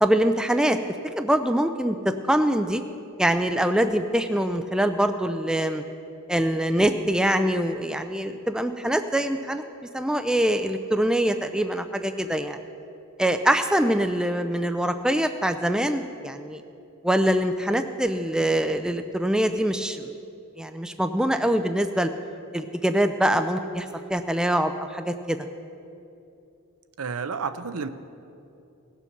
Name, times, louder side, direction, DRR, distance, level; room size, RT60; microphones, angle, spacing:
voice 1, 0.0-0.8 1.2-2.8 3.2-5.8 6.3-9.6 9.9-12.6 13.2-16.6 17.0-20.1 20.6-22.1 22.5-25.4, right 1 dB, 5° right, 8 dB, 0.3 m, -24 dB
voice 2, 27.0-27.9, right 5 dB, 75° right, 11 dB, 0.6 m, -30 dB
17.5 x 6.9 x 5.9 m, 2.8 s
head